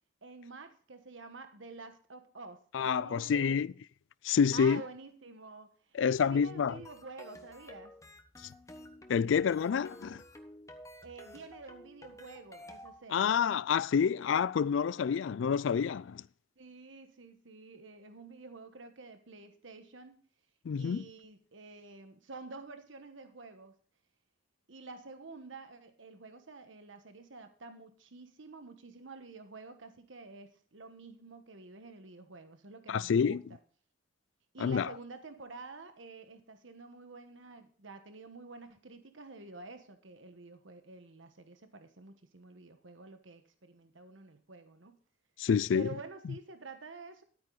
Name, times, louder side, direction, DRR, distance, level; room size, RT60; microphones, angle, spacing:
voice 1, 0.2-3.7 4.5-7.9 11.0-13.4 16.6-20.2 20.8-23.7 24.7-33.6 34.5-45.0 45.7-47.2, right 3 dB, 90° right, 1.2 m, -49 dB
voice 2, 2.7-3.7 4.2-4.8 5.9-6.8 9.1-10.2 13.1-16.2 20.7-21.0 32.9-33.4 34.6-34.9 45.4-45.9, left 6 dB, 80° left, 0.4 m, -28 dB
sound 1, 6.1-13.0, left 1 dB, 15° left, 1.2 m, -52 dB
12.5 x 9.0 x 3.9 m
head